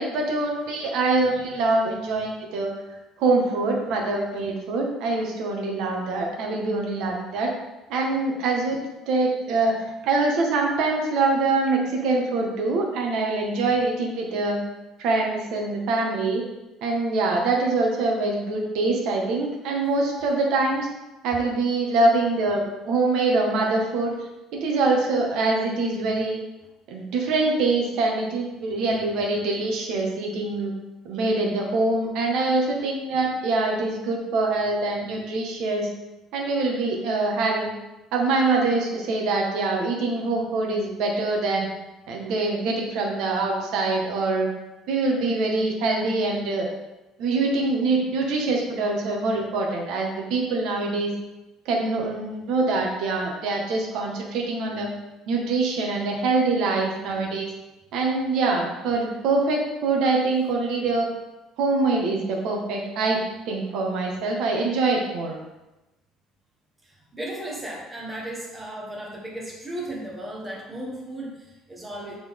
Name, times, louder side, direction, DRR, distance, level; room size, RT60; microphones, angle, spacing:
voice 1, 0.0-2.7 3.2-7.5 7.9-8.8 9.1-9.8 10.0-14.6 15.0-16.4 16.8-20.9 21.2-24.1 24.5-26.4 26.9-30.7 31.0-35.9 36.3-37.7 38.1-41.7 42.1-44.5 44.9-46.7 47.2-51.1 51.6-54.9 55.3-57.5 57.9-61.1 61.6-65.4, right 3 dB, 60° right, 0 dB, 1.4 m, -24 dB
voice 2, 66.8-72.2, right 1 dB, 10° right, -3 dB, 1.3 m, -35 dB
8.4 x 4.1 x 3.7 m, 1.0 s
cardioid pair, 180°, 0 cm